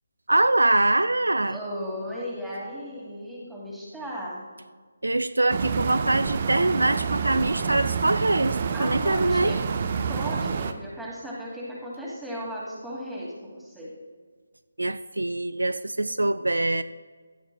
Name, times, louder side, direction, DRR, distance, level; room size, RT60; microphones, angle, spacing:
voice 1, 0.3-1.6 5.0-9.5 14.8-16.8, right 2 dB, 70° right, 12 dB, 0.4 m, -23 dB
voice 2, 1.4-4.5 8.7-9.6 10.0-13.9, equal, ahead, -6 dB, 2.3 m, -36 dB
sound 1, 5.5-10.7, right 6 dB, 35° right, 0.7 m, -28 dB
16.0 x 12.5 x 2.3 m, 1.5 s
figure-of-eight pair, 150°, 0 cm